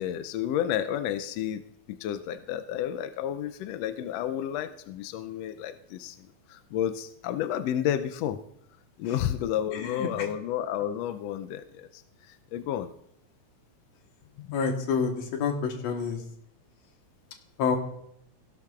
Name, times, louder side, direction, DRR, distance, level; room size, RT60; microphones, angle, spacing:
voice 1, 0.0-1.6 1.9-8.4 9.0-12.0 12.3-12.9 14.4-14.5, left 10 dB, 80° left, 10 dB, 1.5 m, -31 dB
voice 2, 9.7-10.1 14.5-16.2 17.6-17.8, left 5 dB, 65° left, 4 dB, 2.3 m, -28 dB
16.5 x 12.5 x 2.4 m, 0.70 s
omnidirectional pair, 3.5 m